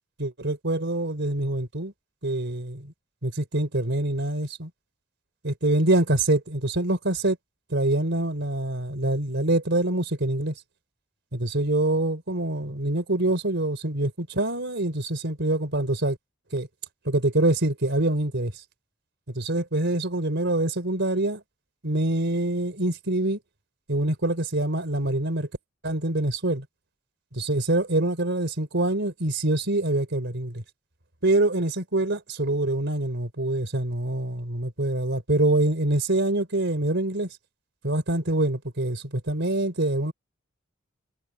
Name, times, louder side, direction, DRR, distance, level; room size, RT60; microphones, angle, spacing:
voice 1, 0.2-1.9 2.2-2.9 3.2-4.7 5.4-7.4 7.7-10.5 11.3-16.2 16.5-16.7 17.1-18.5 19.3-21.4 21.8-23.4 23.9-25.5 25.8-26.7 27.3-30.6 31.2-37.3 37.8-40.1, right 1 dB, 60° right, 4.0 m, -25 dB
head